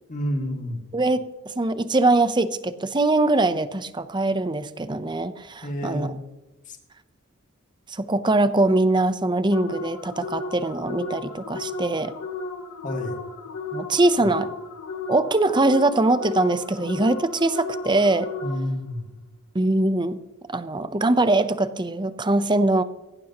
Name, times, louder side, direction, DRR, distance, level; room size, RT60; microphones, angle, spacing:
voice 1, 0.1-0.8 5.6-6.2 6.7-6.8 12.8-13.2 14.2-14.3 18.4-19.1, equal, 40° left, 3 dB, 2.2 m, -29 dB
voice 2, 0.9-6.2 7.9-12.1 13.7-14.5 15.1-18.3 19.5-20.2 20.5-22.8, right 2 dB, 20° right, 12 dB, 0.7 m, -22 dB
sound 1, 9.5-18.9, left 3 dB, 75° left, 1.8 m, -34 dB
17.5 x 15.0 x 3.0 m, 1.0 s
head